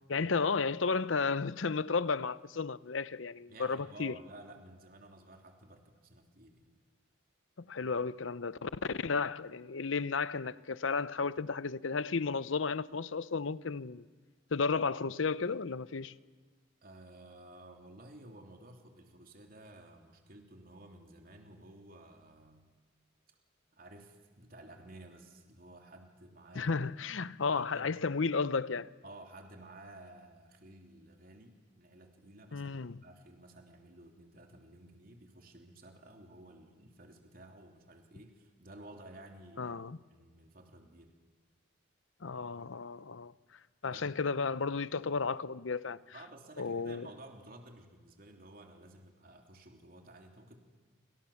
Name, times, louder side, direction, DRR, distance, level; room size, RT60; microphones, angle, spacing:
voice 1, 0.1-4.1 7.7-14.0 14.5-16.1 26.5-28.9 32.5-33.0 39.6-40.0 42.2-43.3 43.8-46.0 46.6-47.1, left 4 dB, 85° left, 0.7 m, -33 dB
voice 2, 3.5-6.7 16.8-22.7 23.7-26.7 27.5-27.9 29.0-41.1 43.9-44.0 46.1-50.6, right 1 dB, 50° right, 3.2 m, -54 dB
29.0 x 26.0 x 7.3 m
head